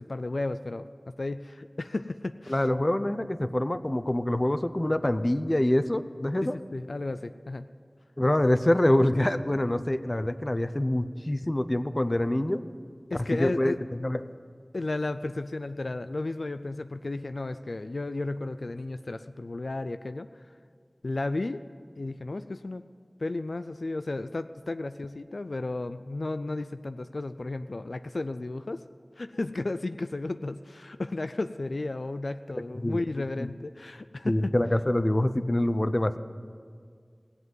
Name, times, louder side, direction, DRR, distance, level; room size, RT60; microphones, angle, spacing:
voice 1, 0.0-2.7 6.4-7.7 13.1-13.8 14.7-20.3 21.0-21.6 22.0-22.8 23.2-28.8 29.2-34.5, left 2 dB, 85° left, 11 dB, 0.4 m, -33 dB
voice 2, 2.5-6.6 8.2-12.6 13.3-13.7 14.0-14.2 32.7-33.0 34.2-36.2, left 1 dB, 35° left, 12 dB, 0.6 m, -25 dB
18.5 x 7.9 x 9.5 m, 2.1 s
wide cardioid pair, 40°, 0 cm